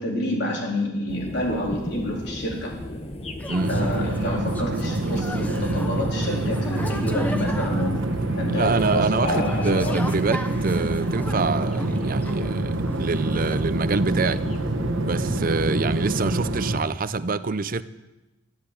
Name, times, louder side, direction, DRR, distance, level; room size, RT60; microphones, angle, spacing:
voice 1, 0.0-2.7 3.7-10.0, left 1 dB, 60° left, 3.9 m, -28 dB
sound 1, 1.1-16.6, left 1 dB, 30° left, 1.3 m, -36 dB
sound 2, 3.4-12.6 12.9-13.7, equal, 10° left, 1.0 m, -37 dB
sound 3, 3.6-16.8, right 2 dB, 80° right, 1.2 m, -26 dB
voice 2, 8.5-14.4 15.0-17.8, right 3 dB, 45° right, 0.6 m, -26 dB
12.0 x 11.5 x 8.3 m
head